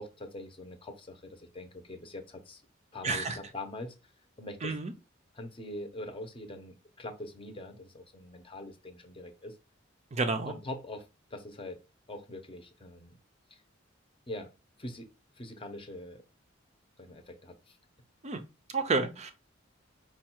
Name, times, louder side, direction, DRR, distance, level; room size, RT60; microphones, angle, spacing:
voice 1, 0.0-2.6 2.9-3.9 4.4-4.7 5.3-9.6 10.5-11.1 11.3-11.8 12.1-13.2 13.5-13.6 14.3-14.5 14.8-15.1 15.4-16.2 17.0-17.8, left 1 dB, 25° left, 0.7 m, -43 dB
voice 2, 3.0-3.4 4.6-4.9 10.1-10.5 18.2-18.4 18.7-19.3, right 3 dB, 35° right, 0.5 m, -30 dB
4.6 x 2.3 x 4.4 m
head